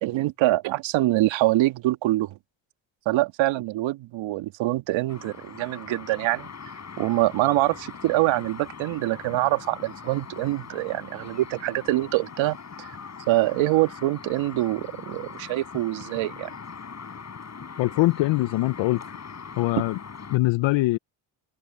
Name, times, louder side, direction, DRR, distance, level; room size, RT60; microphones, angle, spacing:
voice 1, 0.0-2.4 3.1-6.5 7.0-12.9 13.3-16.5, right 17 dB, 65° right, 2.3 m, -25 dB
sound 1, 5.1-20.4, left 5 dB, 35° left, 5.3 m, -41 dB
voice 2, 17.8-19.2 19.6-20.0 20.3-21.0, left 19 dB, 65° left, 1.3 m, -23 dB
hypercardioid pair, 60°, 49 cm